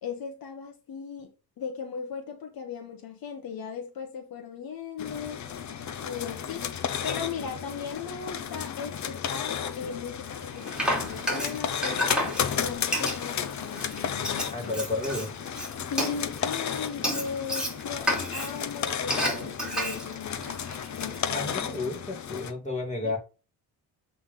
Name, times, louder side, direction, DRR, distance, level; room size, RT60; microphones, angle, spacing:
voice 1, 0.0-5.4 6.0-14.5 15.9-20.6 21.0-21.5 23.0-23.2, left 6 dB, 60° left, 1.3 m, -38 dB
sound 1, 5.0-22.5, left 8 dB, 45° left, 0.8 m, -33 dB
Frying (food), 10.3-21.2, equal, ahead, 2.9 m, -32 dB
voice 2, 14.5-15.3 21.3-23.2, left 3 dB, 20° left, 2.7 m, -31 dB
7.9 x 3.7 x 3.7 m
cardioid pair, 120°, 40 cm